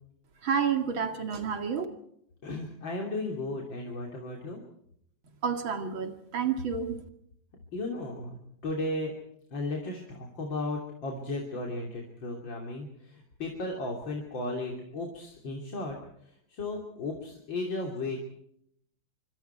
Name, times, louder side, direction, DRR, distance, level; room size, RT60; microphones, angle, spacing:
voice 1, 0.4-1.9 5.4-7.0, right 7 dB, 90° right, 6 dB, 3.1 m, -29 dB
voice 2, 2.4-4.6 7.7-8.4 8.6-9.1 9.5-16.0 16.5-18.2, left 2 dB, 70° left, 0 dB, 3.8 m, -35 dB
25.5 x 25.0 x 4.6 m, 0.71 s
omnidirectional pair, 2.1 m